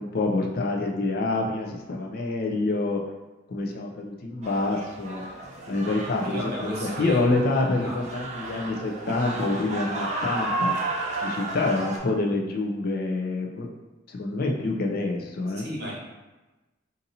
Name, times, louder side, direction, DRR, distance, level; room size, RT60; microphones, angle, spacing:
voice 1, 0.0-3.0 3.5-5.2 5.7-6.5 6.8-10.7 11.2-13.7 14.1-15.6, left 2 dB, 50° left, 1 dB, 0.4 m, -27 dB
sound 1, 4.4-12.0, right 2 dB, 35° right, 0.4 m, -32 dB
voice 2, 6.2-7.3 7.8-8.0 15.6-15.9, equal, 55° right, -4 dB, 1.2 m, -34 dB
2.6 x 2.6 x 4.0 m, 1.1 s
head